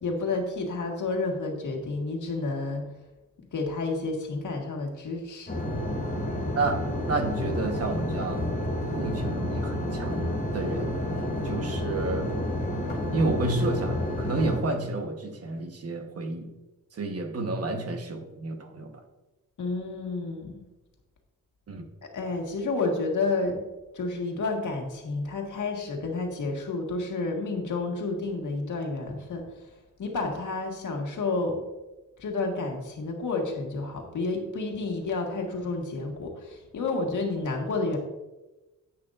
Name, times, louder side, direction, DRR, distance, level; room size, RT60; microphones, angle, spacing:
voice 1, 0.0-2.8 3.5-5.6 19.6-20.6 22.1-23.6 23.9-29.4 30.0-31.6 32.2-38.0, left 3 dB, 65° left, 1 dB, 1.7 m, -30 dB
sound 1, 5.5-14.6, left 1 dB, 30° left, 2.6 m, -30 dB
voice 2, 6.5-8.5 8.9-10.9 11.4-12.3 13.1-16.5 16.9-18.9 21.7-21.8, right 2 dB, 45° right, 4 dB, 1.2 m, -30 dB
10.5 x 8.6 x 2.5 m, 1.1 s
wide cardioid pair, 150°, 33 cm